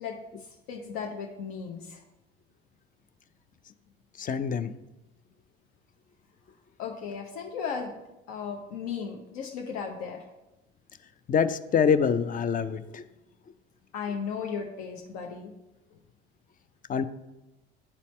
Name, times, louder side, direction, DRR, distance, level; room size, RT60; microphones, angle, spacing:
voice 1, 0.0-2.0 6.8-8.0 8.3-10.2 13.9-15.5, left 6 dB, 60° left, 1 dB, 0.8 m, -36 dB
voice 2, 4.2-4.7 11.3-13.0 16.9-17.0, left 6 dB, 25° left, 13 dB, 0.4 m, -25 dB
10.5 x 4.1 x 3.1 m, 0.98 s
hypercardioid pair, 60°, 32 cm